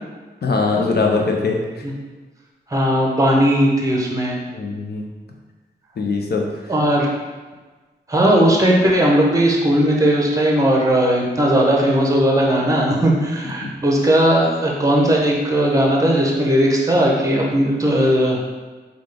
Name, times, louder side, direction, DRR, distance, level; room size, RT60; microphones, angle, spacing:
voice 1, 0.4-1.8 4.5-5.0 6.0-6.7, left 3 dB, 55° left, 1 dB, 0.6 m, -21 dB
voice 2, 2.7-4.4 6.7-7.1 8.1-18.4, right 1 dB, 15° right, -2 dB, 0.8 m, -17 dB
3.6 x 2.4 x 3.3 m, 1.3 s
cardioid pair, 55°, 19 cm